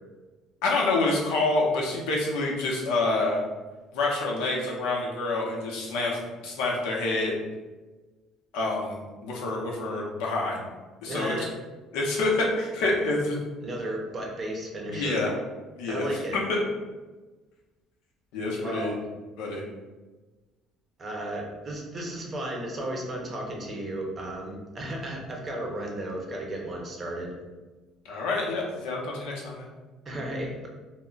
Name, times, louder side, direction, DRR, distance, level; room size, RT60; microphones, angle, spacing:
voice 1, 0.6-3.4 3.9-7.3 8.5-10.6 11.0-11.3 11.9-13.4 14.9-15.3 15.8-16.6 18.3-19.0 19.4-19.6 28.0-29.7, left 2 dB, 90° left, -2 dB, 0.7 m, -27 dB
voice 2, 11.1-11.5 13.6-15.2 15.9-16.4 18.6-19.0 21.0-27.3 30.1-30.7, right 1 dB, 30° right, 0 dB, 0.6 m, -34 dB
2.1 x 2.1 x 3.8 m, 1.2 s
cardioid pair, 130°, 0 cm